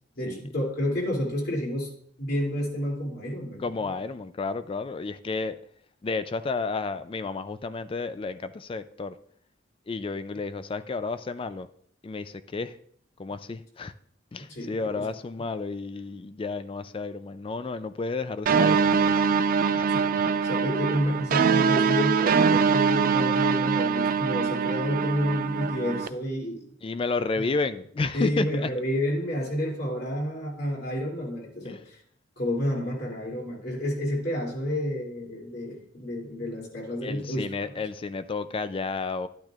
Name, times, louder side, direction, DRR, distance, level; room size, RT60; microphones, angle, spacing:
voice 1, 0.2-3.9 14.5-15.0 19.9-26.7 27.3-27.4 28.1-31.8 32.4-37.7, equal, 55° left, -2 dB, 2.8 m, -30 dB
voice 2, 3.6-5.6 6.0-9.1 9.9-11.7 12.0-12.7 13.2-13.9 14.3-19.2 19.7-20.0 26.8-28.7 31.7-31.8 37.0-39.3, left 3 dB, 30° left, 12 dB, 0.4 m, -31 dB
sound 1, 18.5-26.1, right 6 dB, 50° right, 0.3 m, -23 dB
12.0 x 9.0 x 2.4 m, 0.64 s
head